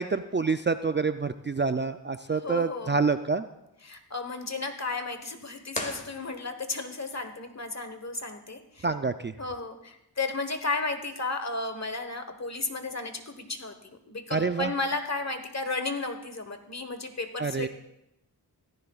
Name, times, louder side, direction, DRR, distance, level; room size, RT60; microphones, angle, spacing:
voice 1, 0.0-3.5 8.8-9.3 14.3-14.7 17.4-17.7, right 4 dB, 30° right, 9 dB, 0.4 m, -27 dB
voice 2, 2.3-3.0 3.8-8.9 9.4-17.7, left 3 dB, 40° left, 7 dB, 1.3 m, -34 dB
sound 1, 5.7-6.9, left 1 dB, 15° left, 1.5 m, -37 dB
16.5 x 14.5 x 2.4 m, 0.86 s
wide cardioid pair, 55°, 42 cm